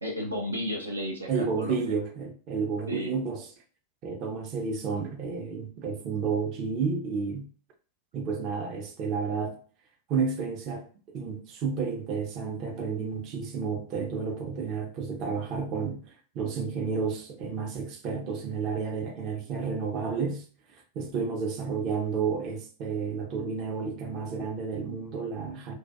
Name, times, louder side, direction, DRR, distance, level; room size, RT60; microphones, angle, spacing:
voice 1, 0.0-1.9 2.9-3.1, equal, 90° right, 0.4 m, -33 dB
voice 2, 1.3-3.5 4.0-7.5 8.1-9.6 10.1-20.5 20.7-25.7, right 5 dB, 45° right, 0.6 m, -31 dB
2.3 x 2.2 x 2.6 m
figure-of-eight pair, 90°, 0 cm